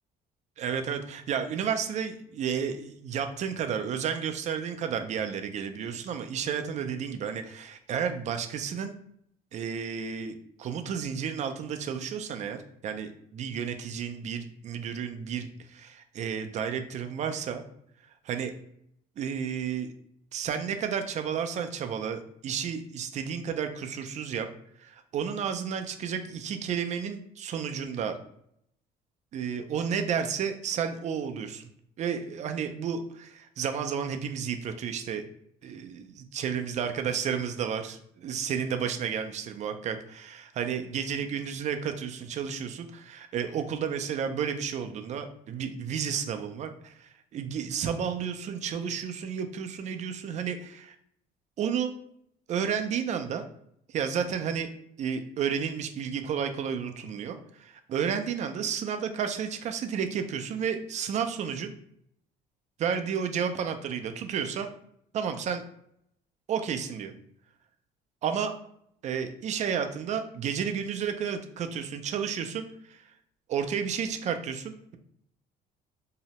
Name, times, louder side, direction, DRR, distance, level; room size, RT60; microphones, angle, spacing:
voice 1, 0.6-8.9 9.5-17.6 18.3-18.5 19.2-19.9 20.3-24.5 24.8-28.2 29.3-31.7 32.0-35.3 35.6-46.9 47.3-50.9 51.6-51.9 52.5-53.4 53.9-54.7 55.0-61.7 62.8-64.7 65.1-65.6 66.5-67.1 68.2-68.5 69.0-72.7 73.5-75.0, right 7 dB, 45° right, 7 dB, 0.4 m, -32 dB
2.7 x 2.0 x 2.9 m, 0.70 s
cardioid pair, 110°, 17 cm